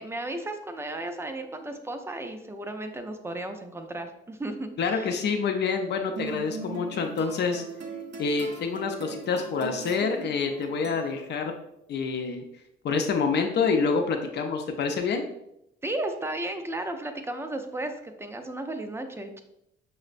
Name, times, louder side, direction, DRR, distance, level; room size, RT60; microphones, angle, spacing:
voice 1, 0.0-5.2 15.8-19.4, right 1 dB, 10° right, 6 dB, 0.4 m, -34 dB
voice 2, 4.8-7.6 8.2-11.5 11.9-12.4 12.8-15.2, left 5 dB, 60° left, 5 dB, 0.5 m, -27 dB
sound 1, 6.2-11.5, right 4 dB, 65° right, 0.7 m, -40 dB
6.1 x 2.1 x 2.5 m, 0.80 s
cardioid pair, 90°, 20 cm